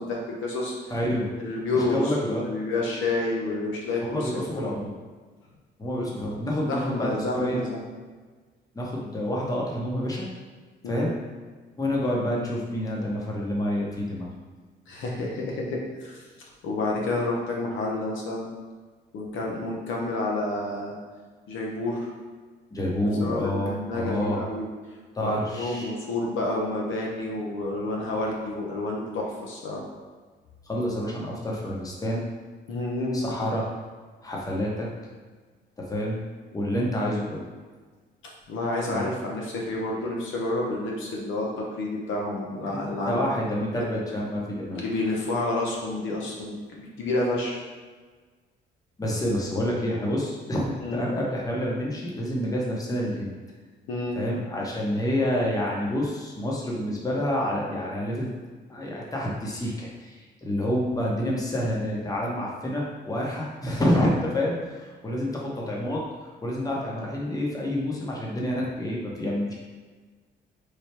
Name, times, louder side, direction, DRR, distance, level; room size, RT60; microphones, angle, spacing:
voice 1, 0.0-0.7 1.4-4.8 6.7-7.8 10.8-11.0 14.9-16.2 16.6-18.5 19.1-21.0 21.5-22.1 23.2-24.7 25.2-29.8 32.7-33.2 38.5-43.3 43.7-43.8 44.7-47.6 50.8-51.1 53.9-54.2, left 2 dB, 80° left, -2 dB, 0.8 m, -29 dB
voice 2, 0.9-1.3 1.7-2.4 4.1-4.9 5.8-7.6 8.7-10.3 10.9-11.1 11.8-14.3 22.7-24.4 25.1-25.9 30.7-32.3 33.1-33.7 34.2-34.9 35.8-36.2 36.5-37.5 38.9-39.1 42.6-44.8 49.0-53.3 54.1-58.3 58.7-66.0 66.4-69.5, left 1 dB, 20° left, -3 dB, 0.9 m, -28 dB
3.3 x 2.3 x 4.3 m, 1.4 s
cardioid pair, 90°, 20 cm